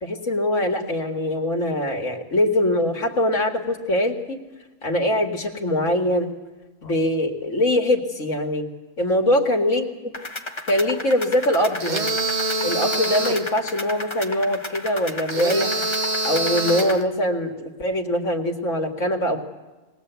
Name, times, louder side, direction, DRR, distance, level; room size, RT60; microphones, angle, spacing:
voice 1, 0.0-4.4 4.8-6.3 6.8-8.7 9.0-9.9 10.7-12.1 12.6-15.8 16.2-19.5, left 1 dB, 65° left, 3 dB, 2.4 m, -22 dB
sound 1, 10.1-17.0, left 2 dB, 20° left, 1.3 m, -34 dB
sound 2, 11.8-13.5 15.3-17.0, right 2 dB, 35° right, 1.1 m, -25 dB
21.5 x 19.5 x 8.2 m, 1.2 s
omnidirectional pair, 1.4 m